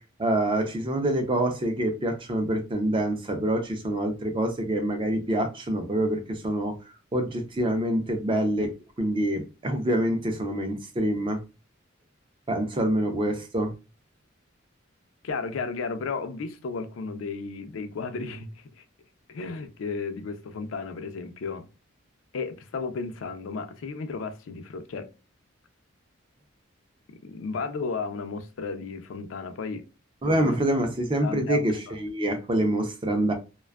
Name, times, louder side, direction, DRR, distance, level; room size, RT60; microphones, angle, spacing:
voice 1, 0.0-6.8 7.1-11.4 12.5-13.7 30.2-33.3, right 1 dB, 25° right, 0.4 m, -26 dB
voice 2, 15.2-18.8 19.3-21.7 22.3-25.1 27.1-29.9 30.2-30.6 31.2-32.0, left 4 dB, 70° left, 0.4 m, -34 dB
2.5 x 2.2 x 2.2 m
head